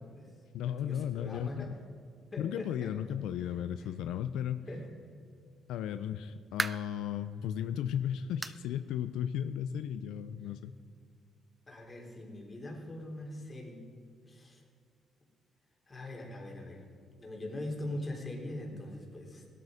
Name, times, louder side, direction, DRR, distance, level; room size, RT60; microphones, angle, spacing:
voice 1, 0.0-1.8 2.3-2.9 3.4-3.9 4.7-4.9 11.7-13.9 14.3-14.6 15.9-16.8 17.2-19.5, left 1 dB, 30° left, 0 dB, 3.6 m, -42 dB
voice 2, 0.5-1.7 2.4-4.7 5.7-10.7, left 9 dB, 90° left, 11 dB, 0.5 m, -35 dB
sound 1, 6.6-7.0 7.5-7.6 8.4-8.7 9.0-9.1 9.6-9.7 10.8-10.9, right 3 dB, 20° right, 0.6 m, -37 dB
17.0 x 12.5 x 5.0 m, 2.3 s
cardioid pair, 90°, 0 cm